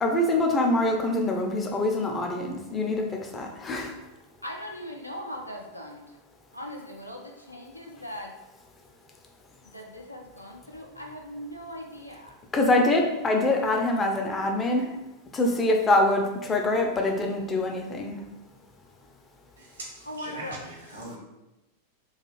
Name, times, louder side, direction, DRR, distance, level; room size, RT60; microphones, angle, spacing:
voice 1, 0.0-3.9 12.5-14.9 15.3-18.2, left 2 dB, 20° left, 0.4 m, -24 dB
voice 2, 4.4-6.2 6.5-8.4 9.6-12.4 20.0-20.6, equal, 90° left, 0.3 m, -39 dB
voice 3, 19.6-21.2, right 1 dB, 70° right, 0.8 m, -41 dB
2.4 x 2.3 x 2.9 m
figure-of-eight pair, 90°, 0 cm